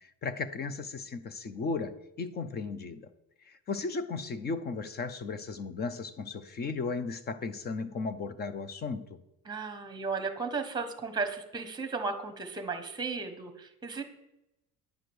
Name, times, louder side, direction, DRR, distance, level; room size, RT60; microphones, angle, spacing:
voice 1, 0.2-3.1 3.5-9.2, left 4 dB, 30° left, 13 dB, 0.6 m, -35 dB
voice 2, 9.4-14.0, right 4 dB, 10° right, 7 dB, 1.0 m, -35 dB
10.5 x 5.0 x 7.8 m, 0.88 s
cardioid pair, 170°, 36 cm